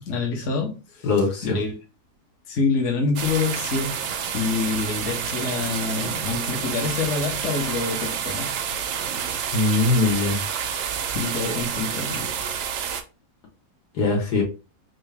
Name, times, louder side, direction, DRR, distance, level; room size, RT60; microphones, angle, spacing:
voice 1, 0.0-1.1 1.4-1.7 2.5-8.5 11.1-12.4, left 4 dB, 55° left, 1.2 m, -26 dB
voice 2, 1.0-1.6 9.5-10.4 13.9-14.4, left 3 dB, 80° left, 1.7 m, -21 dB
sound 1, 3.2-13.0, right 7 dB, 70° right, 0.7 m, -29 dB
3.3 x 2.7 x 3.3 m
omnidirectional pair, 1.6 m